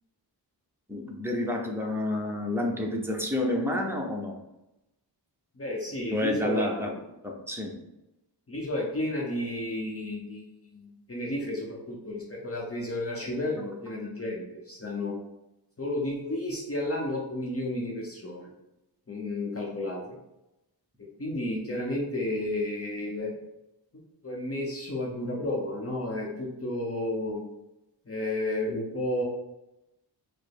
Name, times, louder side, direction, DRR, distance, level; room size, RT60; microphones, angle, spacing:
voice 1, 0.9-4.4 6.1-7.0 7.2-7.8, left 1 dB, 5° right, 0 dB, 0.7 m, -29 dB
voice 2, 5.6-6.9 8.5-15.1 15.8-18.5 19.1-20.1 21.0-23.3 24.2-27.5 28.1-29.2, left 1 dB, 35° left, -3 dB, 0.8 m, -32 dB
4.8 x 2.1 x 4.7 m, 0.91 s
wide cardioid pair, 125°, 42 cm